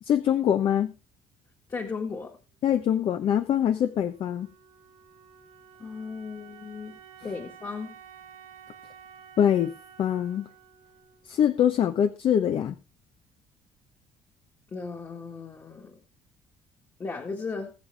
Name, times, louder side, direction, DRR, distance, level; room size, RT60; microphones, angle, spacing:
voice 1, 0.0-0.9 2.6-4.5 9.4-9.7 10.0-10.5 11.3-12.7, left 9 dB, 50° left, 1.0 m, -23 dB
voice 2, 1.7-2.4 5.8-7.9 14.7-16.0 17.0-17.7, left 4 dB, 25° left, 1.9 m, -36 dB
Wind instrument woodwind instrument, 3.5-12.2, right 8 dB, 80° right, 3.5 m, -52 dB
20.5 x 7.4 x 3.5 m
cardioid pair, 140°, 11 cm